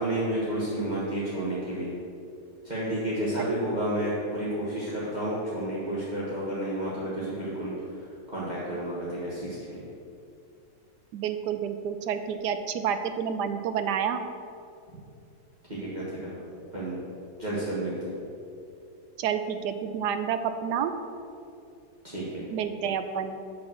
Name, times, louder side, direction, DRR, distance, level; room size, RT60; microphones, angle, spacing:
voice 1, 0.0-1.9 2.6-7.9 8.3-9.9 15.7-16.4 16.7-17.0 17.4-17.9 22.0-22.5, right 1 dB, 30° right, -9 dB, 1.5 m, -31 dB
voice 2, 11.1-14.2 19.2-20.9 22.5-23.4, right 8 dB, 80° right, 9 dB, 1.2 m, -29 dB
7.1 x 5.0 x 6.3 m, 2.6 s
omnidirectional pair, 1.7 m